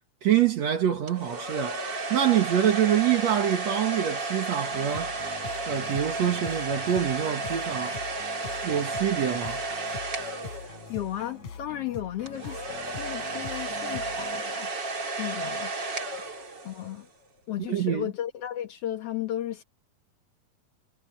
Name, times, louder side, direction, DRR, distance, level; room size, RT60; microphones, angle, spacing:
voice 1, 0.2-5.1 5.7-8.0 8.6-9.6 17.7-18.1, right 10 dB, 60° right, 2.1 m, -25 dB
sound 1, 1.1-11.2 12.3-17.0, right 3 dB, 30° right, 3.0 m, -33 dB
sound 2, 4.7-14.4, left 5 dB, 50° left, 4.3 m, -43 dB
voice 2, 10.9-12.6 13.0-14.7 15.2-15.7 16.6-17.1 17.5-19.6, left 12 dB, 75° left, 1.4 m, -34 dB
omnidirectional pair, 4.4 m